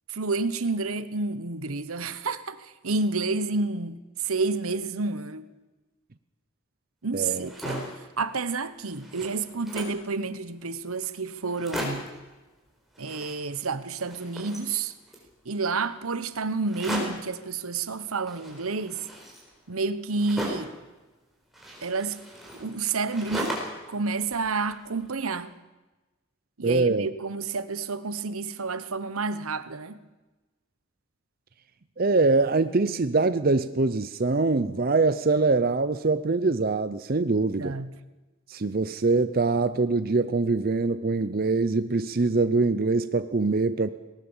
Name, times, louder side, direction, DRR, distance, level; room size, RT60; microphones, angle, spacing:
voice 1, 0.1-5.5 7.0-7.9 8.2-12.0 13.0-14.9 15.4-19.1 19.7-20.7 21.8-22.2 22.6-23.6 23.9-25.5 26.6-30.0 37.6-37.9, right 4 dB, 80° right, 1.1 m, -30 dB
voice 2, 7.1-7.5 26.6-27.1 32.0-37.8 38.5-43.9, right 3 dB, 45° right, 0.6 m, -23 dB
sound 1, 7.3-8.0 8.5-8.6 8.8-10.1 10.7-10.8 11.0-11.1 11.4-12.2 12.9-13.7 14.0-15.3 16.7-17.3 18.3-20.8 21.5-23.9 24.2-25.1, equal, ahead, 4.3 m, -37 dB
19.5 x 18.5 x 7.3 m
head